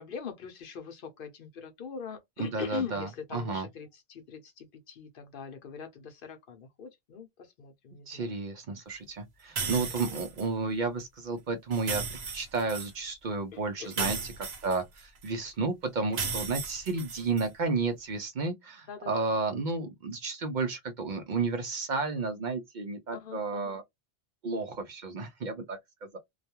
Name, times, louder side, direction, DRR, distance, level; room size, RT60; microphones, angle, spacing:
voice 1, 0.0-8.4 9.8-10.2 13.5-14.2 16.9-17.4 18.9-19.3 23.1-23.8, left 7 dB, 65° left, 0.8 m, -42 dB
voice 2, 2.4-3.7 8.1-12.0 12.3-14.3 14.6-23.8 24.4-26.2, right 3 dB, 55° right, 0.6 m, -32 dB
sound 1, 9.6-10.4 11.7-12.9 13.9-15.3 16.1-17.5, right 5 dB, 85° right, 1.1 m, -35 dB
2.3 x 2.2 x 2.8 m
omnidirectional pair, 1.0 m